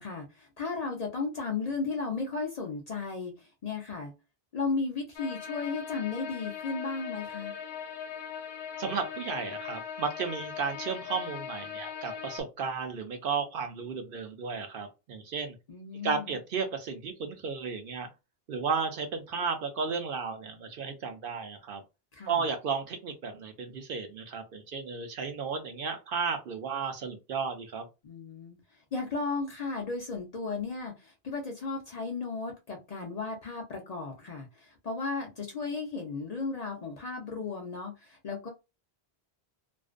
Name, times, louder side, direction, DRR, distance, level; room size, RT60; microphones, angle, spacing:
voice 1, 0.0-4.1 4.5-7.5 15.7-16.3 22.1-22.4 28.0-28.6 28.9-38.5, left 4 dB, 50° left, 0.5 m, -35 dB
sound 1, 5.2-12.4, left 8 dB, 90° left, 0.8 m, -40 dB
voice 2, 8.8-15.6 16.0-18.1 18.5-21.8 22.3-27.9, right 5 dB, 65° right, 0.7 m, -33 dB
2.5 x 2.0 x 2.4 m
omnidirectional pair, 1.1 m